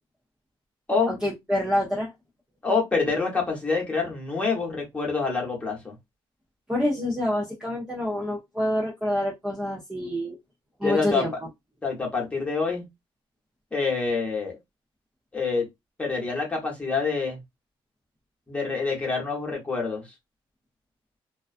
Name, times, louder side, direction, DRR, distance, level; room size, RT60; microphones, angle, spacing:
voice 1, 1.1-2.1 6.7-10.4 10.8-11.3, left 1 dB, 10° right, 0.6 m, -27 dB
voice 2, 2.6-5.9 10.8-11.2 11.8-12.8 13.7-14.6 15.3-15.7 16.0-17.4 18.5-20.1, left 4 dB, 15° left, 0.9 m, -26 dB
2.4 x 2.2 x 2.4 m
cardioid pair, 155°, 10 cm